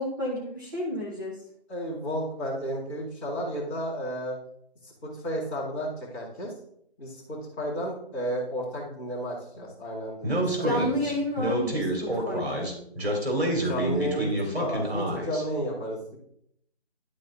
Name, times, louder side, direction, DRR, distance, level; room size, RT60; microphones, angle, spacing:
voice 1, 0.0-1.4 10.6-12.7, left 1 dB, 20° right, -7 dB, 1.1 m, -30 dB
voice 2, 1.7-4.4 4.8-6.5 7.0-10.9 13.6-16.2, equal, 10° left, -10 dB, 1.6 m, -33 dB
Speech, 10.2-15.4, right 1 dB, 70° right, 3.0 m, -28 dB
11.5 x 4.1 x 3.8 m, 0.70 s
figure-of-eight pair, 165°, 32 cm